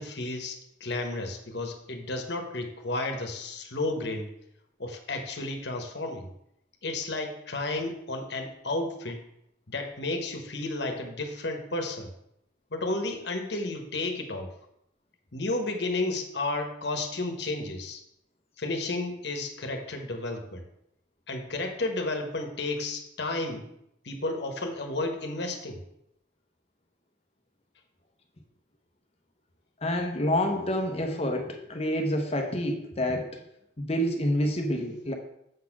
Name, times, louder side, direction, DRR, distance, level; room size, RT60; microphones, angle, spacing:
voice 1, 0.0-4.3 4.8-6.3 6.8-9.2 9.7-12.1 12.7-14.5 15.3-18.0 18.6-20.6 21.3-23.7 24.0-25.8, left 2 dB, 60° left, 4 dB, 1.2 m, -32 dB
voice 2, 29.8-33.4 33.8-35.1, equal, 30° left, 4 dB, 0.8 m, -28 dB
7.2 x 4.2 x 5.9 m, 0.79 s
head